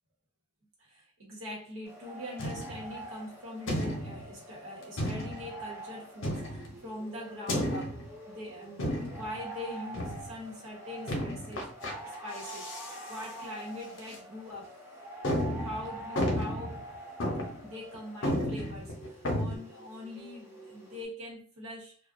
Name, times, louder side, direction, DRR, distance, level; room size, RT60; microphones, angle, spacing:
voice 1, 0.8-11.7 12.0-14.8 15.6-16.8 17.6-22.0, left 1 dB, 75° right, 1.0 m, -43 dB
sound 1, 1.8-21.0, right 1 dB, 10° right, 0.7 m, -46 dB
sound 2, 2.4-2.9 3.7-4.3 5.0-5.5 6.2-6.8 7.5-8.1 8.8-9.4 9.9-10.3 11.1-11.9 12.4-12.9 13.2-13.3 14.0-14.1 14.6-14.7 15.2-16.8 17.2-17.6 17.9-18.0 18.2-19.6, equal, 60° left, 0.7 m, -32 dB
2.4 x 2.2 x 2.5 m
head